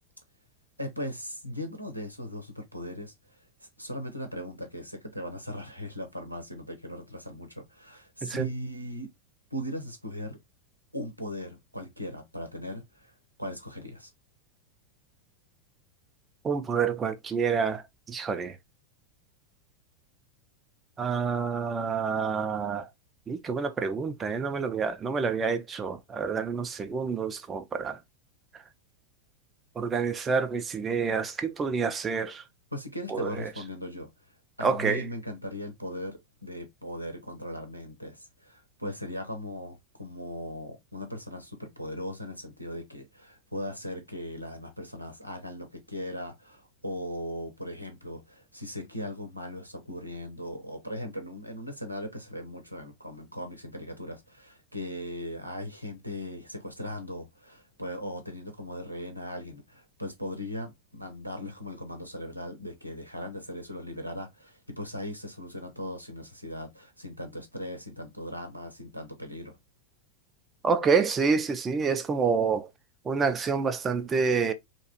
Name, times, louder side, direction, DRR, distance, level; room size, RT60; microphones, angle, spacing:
voice 1, 0.8-3.1 3.6-9.1 9.5-10.4 10.9-13.1 13.4-14.1 32.7-34.1 34.6-69.5, equal, 90° right, 0.6 m, -38 dB
voice 2, 16.4-17.8 18.1-18.6 21.0-22.9 23.3-28.0 29.8-32.4 33.1-33.3 34.6-35.0 70.6-72.7 73.1-74.5, right 5 dB, 20° right, 0.3 m, -28 dB
2.9 x 2.3 x 2.6 m
figure-of-eight pair, 90°, 0 cm